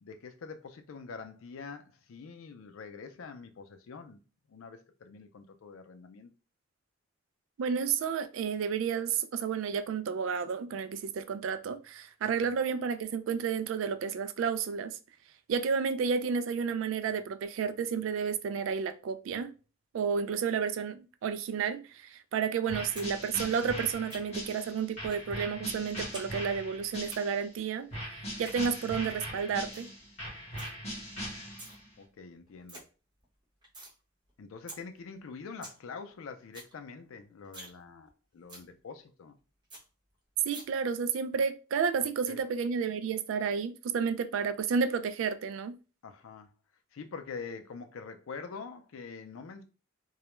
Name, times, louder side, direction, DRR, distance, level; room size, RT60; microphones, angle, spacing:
voice 1, 0.0-4.2 4.5-6.3 12.4-12.6 32.0-32.8 34.4-39.3 42.3-42.4 46.0-46.5 46.9-49.6, left 5 dB, 80° left, 0.4 m, -45 dB
voice 2, 7.6-15.0 15.5-19.5 19.9-27.9 28.4-29.9 40.5-45.8, right 6 dB, 70° right, 0.3 m, -31 dB
sound 1, 22.7-27.5 27.9-31.9, equal, 35° left, 1.1 m, -40 dB
sound 2, 23.0-23.1 23.4-24.5 25.1-25.3 25.6-26.3 26.5-27.2 28.2-28.6 29.0-29.1 29.4-29.5 29.7-29.9 30.2-30.7 31.3-31.8 32.2-32.3 32.5-32.8 33.2-33.9 34.3-34.4 34.7-34.8 35.2-35.3 35.4-35.8 36.1-36.2 36.4-36.7 37.0-37.1 37.4-37.8 38.1-38.2 38.5-38.7 39.1-39.2 39.4-39.5 39.7-39.8 40.5-40.6, right 1 dB, 25° right, 0.8 m, -46 dB
2.3 x 2.1 x 2.9 m
head